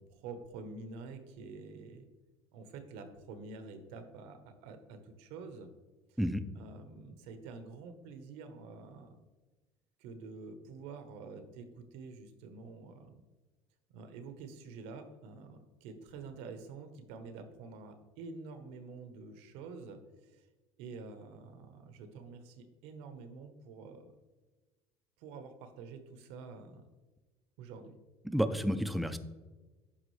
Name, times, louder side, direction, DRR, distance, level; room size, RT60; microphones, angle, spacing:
voice 1, 0.0-2.0 2.5-5.7 6.1-6.2 6.5-9.2 10.0-13.2 13.9-20.5 20.8-24.1 25.2-26.8 27.6-27.9, right 4 dB, 85° right, 8 dB, 1.1 m, -48 dB
voice 2, 28.3-29.2, equal, ahead, 10 dB, 0.3 m, -30 dB
9.8 x 6.2 x 3.2 m, 1.2 s
cardioid pair, 170°, 10 cm